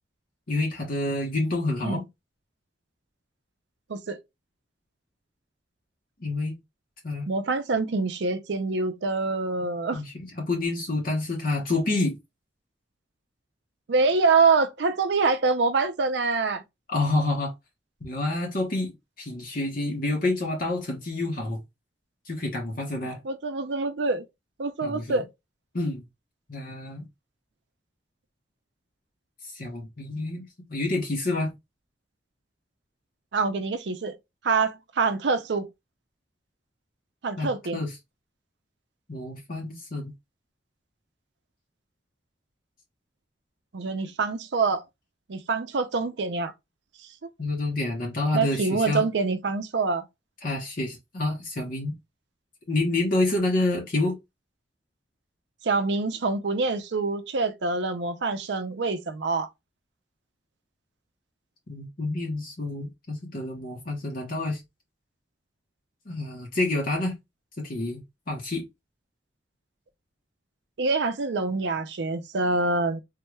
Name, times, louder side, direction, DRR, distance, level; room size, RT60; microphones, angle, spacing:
voice 1, 0.5-2.0 6.2-6.5 7.0-7.3 9.9-12.2 16.9-17.5 18.0-18.9 19.2-21.6 22.3-23.2 24.8-25.2 25.7-26.0 26.5-27.1 29.5-30.4 30.7-31.5 37.4-38.0 39.1-40.1 47.4-49.1 50.4-51.9 52.7-54.1 61.7-64.6 66.1-67.1 67.6-68.0 68.3-68.6, left 2 dB, 50° left, 0.9 m, -28 dB
voice 2, 7.3-10.0 13.9-16.6 23.2-24.2 24.6-25.3 33.3-34.1 34.4-35.7 37.2-37.8 43.7-44.8 45.3-46.5 48.3-50.0 55.6-59.5 70.8-73.0, right 4 dB, 70° right, 0.5 m, -25 dB
3.6 x 2.3 x 3.0 m
head